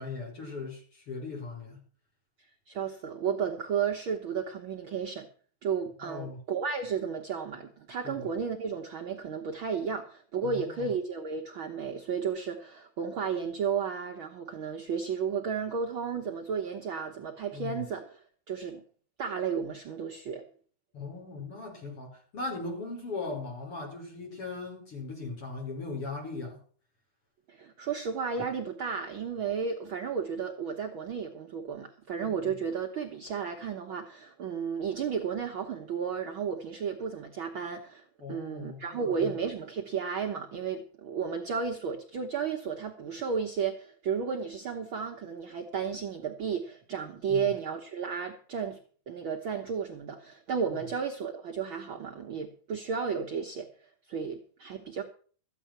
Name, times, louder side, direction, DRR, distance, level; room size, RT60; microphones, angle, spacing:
voice 1, 0.0-1.8 6.0-6.4 8.0-8.2 10.4-10.9 17.5-17.8 20.9-26.6 32.2-32.6 38.2-39.3 47.3-47.4, left 3 dB, 35° left, 0 dB, 6.0 m, -39 dB
voice 2, 2.7-5.3 5.6-18.2 18.5-18.8 19.2-20.5 27.5-48.8 49.1-53.7 54.1-55.0, right 6 dB, 80° right, 2 dB, 1.1 m, -33 dB
14.0 x 9.8 x 5.9 m, 0.43 s
omnidirectional pair, 4.1 m